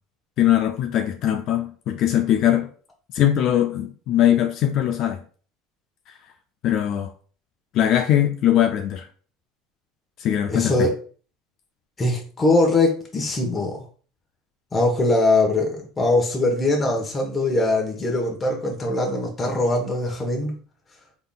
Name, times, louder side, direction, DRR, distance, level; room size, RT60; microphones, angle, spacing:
voice 1, 0.4-2.7 3.1-5.2 6.6-7.1 7.7-9.1 10.2-10.9, left 11 dB, 55° left, 0.4 m, -21 dB
voice 2, 10.5-10.9 12.0-13.8 14.7-20.5, left 2 dB, 25° left, 1.2 m, -22 dB
3.7 x 3.7 x 2.4 m
supercardioid pair, 95°, 0 cm